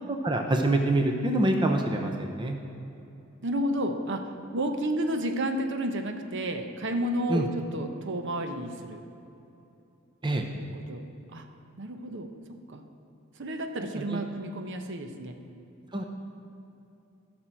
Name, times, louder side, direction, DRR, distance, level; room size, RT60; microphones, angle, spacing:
voice 1, 0.1-2.6 7.3-7.5 10.2-10.4 14.1-14.2 15.9-16.0, right 1 dB, 20° right, 3 dB, 0.6 m, -25 dB
voice 2, 3.4-9.0 10.6-11.0 11.3-11.5 11.8-12.3 12.7-12.9 13.4-15.4, right 1 dB, 60° right, 5 dB, 0.8 m, -31 dB
15.5 x 6.2 x 4.5 m, 2.8 s
head